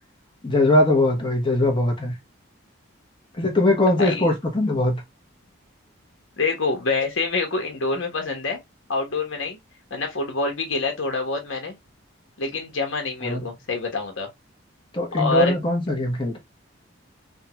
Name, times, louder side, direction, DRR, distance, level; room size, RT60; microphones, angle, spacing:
voice 1, 0.4-2.1 3.4-5.0 13.2-13.4 14.9-16.4, left 1 dB, 25° left, 0.9 m, -21 dB
voice 2, 6.4-8.6 8.9-9.6 9.9-11.8 12.4-14.3 15.1-15.5, left 4 dB, 65° left, 1.1 m, -26 dB
3.7 x 2.3 x 2.8 m
head